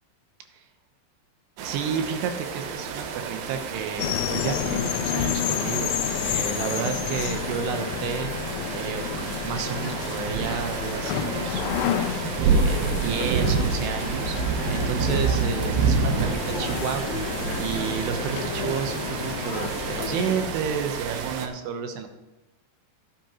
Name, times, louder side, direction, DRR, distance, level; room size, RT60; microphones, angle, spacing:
sound 1, 1.6-21.5, right 5 dB, 70° right, 2.4 m, -29 dB
voice 1, 1.6-5.9 6.3-8.3 8.7-11.6 12.4-14.4 14.7-17.2 17.6-22.1, right 7 dB, 85° right, 6 dB, 3.2 m, -31 dB
sound 2, 4.0-20.5, left 10 dB, 80° left, 2.1 m, -30 dB
16.0 x 9.7 x 3.0 m, 1.1 s
omnidirectional pair, 4.6 m